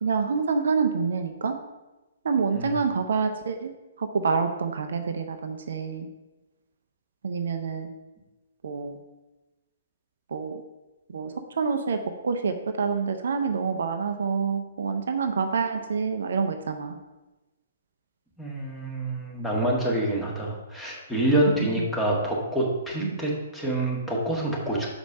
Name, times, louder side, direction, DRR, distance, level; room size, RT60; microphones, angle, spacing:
voice 1, 0.0-1.6 2.2-3.7 4.0-6.1 7.2-7.9 8.6-9.0 10.3-10.6 11.1-17.0 21.5-21.7 23.0-23.2, right 5 dB, 60° right, 6 dB, 0.6 m, -27 dB
voice 2, 18.4-24.9, right 1 dB, 5° left, -4 dB, 1.7 m, -26 dB
6.0 x 5.1 x 5.5 m, 1.1 s
figure-of-eight pair, 120°, 0 cm